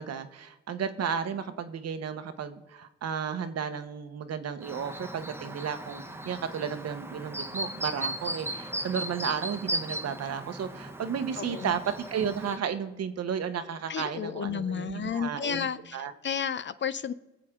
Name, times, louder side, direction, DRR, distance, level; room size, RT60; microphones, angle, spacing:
voice 1, 0.0-16.1, right 7 dB, 55° right, 10 dB, 1.1 m, -33 dB
Chirp tweet, 4.6-12.6, right 1 dB, 10° right, 1.0 m, -37 dB
voice 2, 11.4-11.8 13.9-16.0 16.2-17.1, left 7 dB, 40° left, 14 dB, 0.6 m, -32 dB
22.5 x 7.5 x 3.7 m, 1.0 s
cardioid pair, 90°, 30 cm